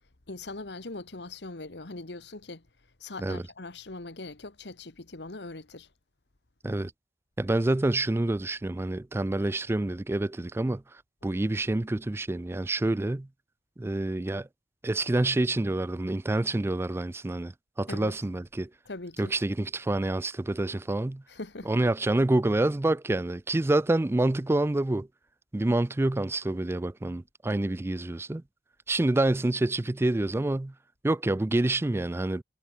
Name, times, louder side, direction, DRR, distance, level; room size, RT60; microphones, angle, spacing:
voice 1, 0.3-2.6 3.0-5.9 17.9-18.1 18.9-19.3 21.3-21.7, left 2 dB, 70° left, 1.6 m, -41 dB
voice 2, 7.4-10.8 11.2-13.3 13.8-14.5 14.8-17.5 17.8-18.7 19.2-21.2 21.7-25.1 25.5-28.4 28.9-30.7 31.0-32.4, right 2 dB, 15° right, 0.3 m, -27 dB
head